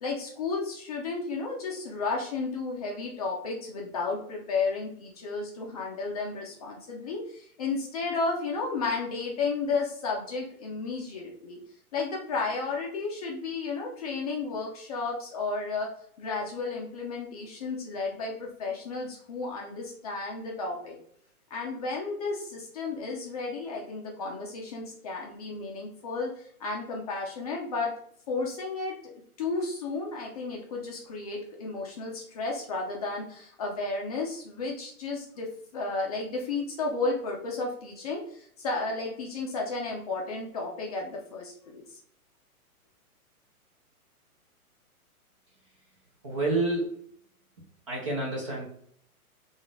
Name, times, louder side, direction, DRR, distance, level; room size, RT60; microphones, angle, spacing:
voice 1, 0.0-11.6 11.9-15.9 16.2-21.0 21.5-27.9 28.3-28.9 29.4-35.5 35.7-42.0, left 3 dB, 25° left, -1 dB, 0.5 m, -33 dB
voice 2, 46.2-47.0 47.9-48.7, right 2 dB, 20° right, -2 dB, 0.5 m, -28 dB
3.8 x 2.5 x 3.4 m, 0.64 s
hypercardioid pair, 145°, 45 cm